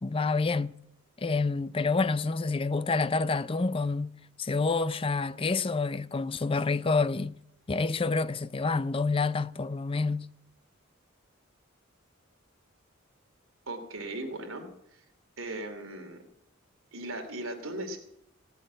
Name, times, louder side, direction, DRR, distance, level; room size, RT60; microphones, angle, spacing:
voice 1, 0.0-0.7 1.2-4.1 4.4-7.3 7.7-10.3, left 4 dB, 25° left, 0.5 m, -28 dB
voice 2, 13.7-14.7 15.4-16.2 16.9-18.0, right 1 dB, 75° right, 2.8 m, -37 dB
17.0 x 7.7 x 9.1 m
head